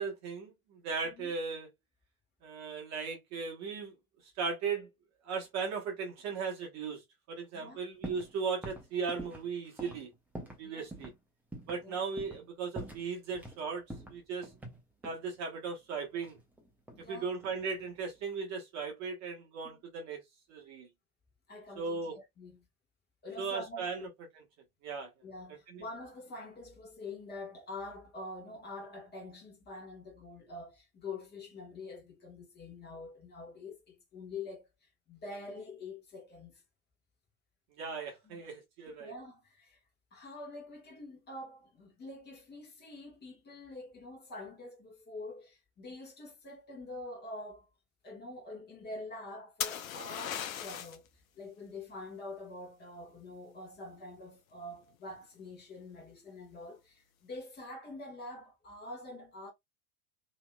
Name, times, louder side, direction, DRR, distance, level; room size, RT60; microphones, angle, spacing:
voice 1, 0.0-1.7 2.4-3.9 4.4-4.9 5.2-7.0 7.3-10.1 10.6-11.1 11.7-14.5 15.0-16.4 17.1-20.2 20.5-20.9 21.8-22.2 23.4-24.1 24.8-25.1 25.7-25.8 37.8-39.1, right 5 dB, 35° right, 1.2 m, -37 dB
voice 2, 7.5-7.8 10.6-10.9 11.8-12.0 16.9-17.3 19.6-19.8 21.5-22.6 23.2-24.1 25.2-36.6 38.2-38.5 39.0-39.8 40.1-47.7 48.0-51.1 51.3-59.5, left 2 dB, 20° left, 1.3 m, -46 dB
sound 1, 8.0-8.3 8.6-10.6 10.9-11.1 11.5-11.8 12.2-12.5 12.7-13.6 13.9-15.2 16.2-17.1 17.4-17.9, right 1 dB, 5° right, 0.7 m, -45 dB
sound 2, 49.6-51.1 54.7-55.2, left 9 dB, 60° left, 0.7 m, -37 dB
3.0 x 2.7 x 2.2 m
figure-of-eight pair, 90°, 47 cm